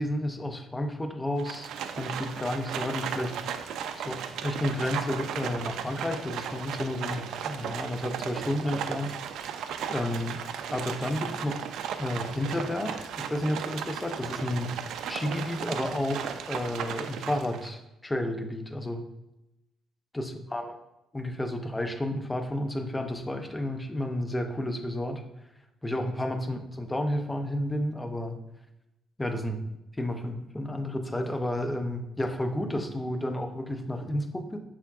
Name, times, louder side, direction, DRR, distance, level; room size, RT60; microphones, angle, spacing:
voice 1, 0.0-1.7 2.0-3.3 3.9-9.1 9.9-10.4 10.7-11.7 12.0-14.7 15.1-19.0 20.1-20.7 21.1-25.2 25.8-28.4 29.2-29.6 30.0-34.6, left 1 dB, 15° left, 5 dB, 0.6 m, -31 dB
Livestock farm animals working animals, 1.4-17.7, right 8 dB, 80° right, 0.3 m, -36 dB
5.7 x 3.5 x 2.3 m, 0.92 s
cardioid pair, 90°, 0 cm